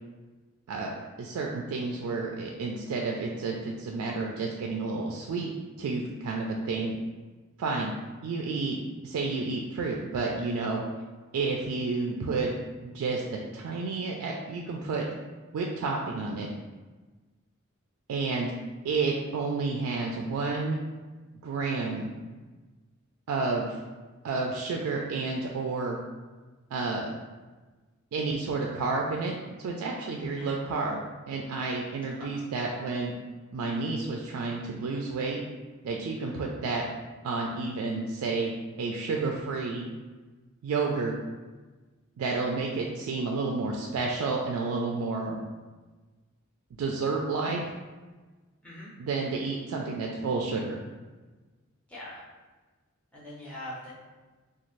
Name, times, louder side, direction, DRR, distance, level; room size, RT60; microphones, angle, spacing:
voice 1, 1.2-5.5 5.8-6.9 7.6-7.9 8.2-8.8 9.0-10.8 11.3-12.5 12.8-15.1 15.5-16.5 18.1-18.5 18.8-20.8 21.4-22.1 23.3-23.8 24.2-26.0 26.7-27.1 28.1-31.0 31.3-33.1 33.5-35.4 35.8-36.8 37.2-38.5 38.8-39.9 40.6-41.1 42.2-45.4 46.8-47.6 49.0-50.8, right 3 dB, 85° right, -1 dB, 0.3 m, -30 dB
voice 2, 51.9-52.2 53.1-53.9, left 1 dB, 5° left, -9 dB, 0.5 m, -42 dB
2.5 x 2.3 x 3.1 m, 1.3 s
head